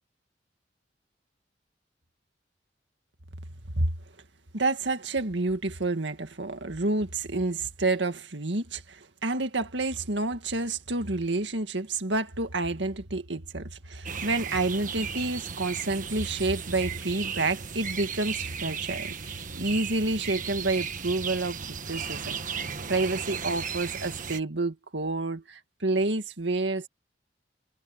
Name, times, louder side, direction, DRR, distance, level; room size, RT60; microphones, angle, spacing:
voice 1, 4.5-22.4 22.9-26.9, right 2 dB, 80° right, 2.0 m, -29 dB
sound 1, 14.1-24.4, right 6 dB, 45° right, 1.5 m, -35 dB
head